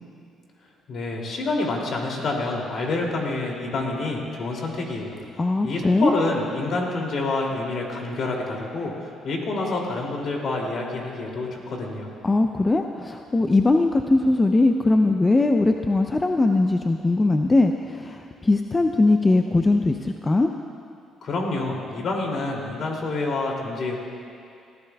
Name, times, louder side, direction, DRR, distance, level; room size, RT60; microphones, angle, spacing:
voice 1, 0.9-12.1 21.2-24.0, left 2 dB, 60° left, -1 dB, 2.7 m, -28 dB
voice 2, 5.4-6.1 12.2-20.5, left 2 dB, 20° left, 5 dB, 0.5 m, -20 dB
20.0 x 15.0 x 2.3 m, 2.5 s
cardioid pair, 85°, 0 cm